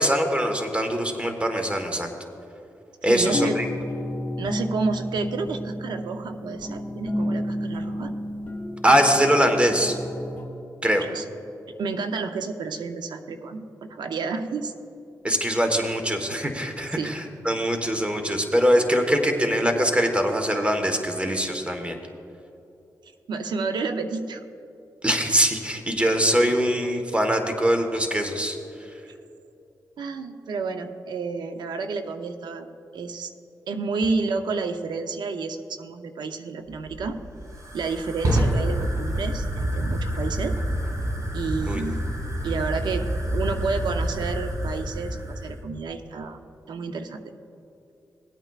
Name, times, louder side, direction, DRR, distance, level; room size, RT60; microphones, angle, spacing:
voice 1, 0.0-2.1 3.0-3.7 8.8-10.0 10.8-11.0 15.2-22.0 25.0-28.6 41.7-41.8, equal, 15° right, 5 dB, 1.3 m, -22 dB
voice 2, 3.1-3.6 4.4-8.1 11.1-11.2 11.8-14.7 17.0-17.1 23.3-24.4 30.0-32.7 32.9-33.3 33.7-37.2 37.7-40.6 41.3-42.0 42.4-43.1 43.3-46.4 46.7-47.2, right 4 dB, 80° right, 7 dB, 0.7 m, -30 dB
sound 1, 3.2-10.4, left 1 dB, 25° left, 1.6 m, -31 dB
Fire, 36.7-45.6, right 1 dB, 50° right, 2.0 m, -28 dB
18.0 x 8.9 x 2.4 m, 2.8 s
cardioid pair, 60°, 7 cm